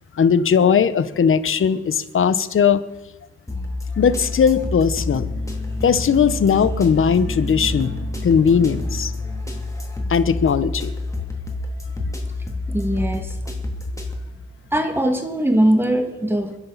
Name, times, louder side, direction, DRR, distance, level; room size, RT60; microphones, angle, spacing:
voice 1, 0.2-2.8 4.0-5.3 5.8-7.9 8.2-9.1 10.1-10.9, left 7 dB, 45° left, 13 dB, 1.1 m, -18 dB
sound 1, 3.5-14.1, left 2 dB, 10° left, 2.7 m, -28 dB
sound 2, 4.9-9.7, left 1 dB, 60° right, 5.4 m, -36 dB
voice 2, 12.7-13.5 14.7-16.6, right 1 dB, 5° right, 4 dB, 2.2 m, -21 dB
29.5 x 10.5 x 4.2 m, 1.0 s
cardioid pair, 90°, 30 cm